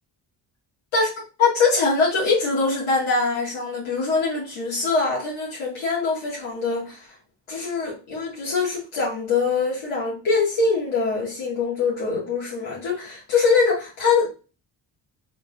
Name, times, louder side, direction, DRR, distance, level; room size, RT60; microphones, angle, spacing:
voice 1, 0.9-7.1 7.5-14.3, left 4 dB, 80° left, 1.7 m, -23 dB
3.8 x 3.6 x 2.3 m
cardioid pair, 60°, 47 cm